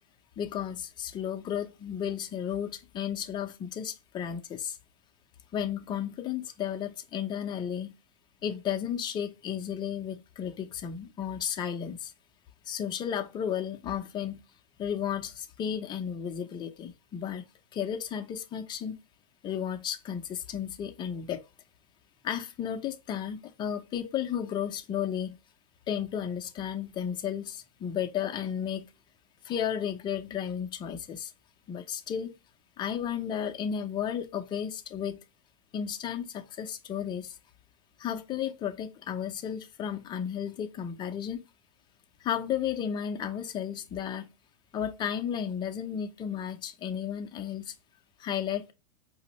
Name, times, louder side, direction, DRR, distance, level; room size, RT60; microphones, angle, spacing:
voice 1, 0.4-4.8 5.5-7.9 8.4-12.1 12.7-14.4 14.8-17.4 17.7-18.9 19.4-21.4 22.2-25.4 25.9-28.9 29.4-31.3 31.7-32.3 32.8-35.2 35.7-37.4 38.0-41.4 42.2-44.3 44.7-47.7 48.2-48.7, left 8 dB, 25° left, 0.5 m, -33 dB
4.9 x 2.0 x 2.9 m
supercardioid pair, 130°, 20 cm